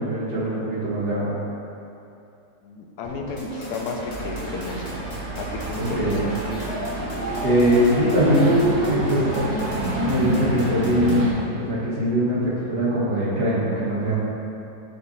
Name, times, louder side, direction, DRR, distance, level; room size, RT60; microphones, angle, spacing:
voice 1, 0.0-1.4 5.8-6.3 7.4-8.5 8.9-14.2, equal, 80° right, -8 dB, 2.0 m, -22 dB
voice 2, 2.6-5.0 5.4-6.4, left 4 dB, 80° left, 2 dB, 1.2 m, -33 dB
sound 1, 3.0-10.4, left 1 dB, 55° left, 2.1 m, -37 dB
sound 2, 3.4-11.2, left 1 dB, 30° left, 1.1 m, -43 dB
sound 3, 4.1-11.3, right 1 dB, 50° right, 1.0 m, -27 dB
6.9 x 3.7 x 4.1 m, 2.8 s
omnidirectional pair, 1.7 m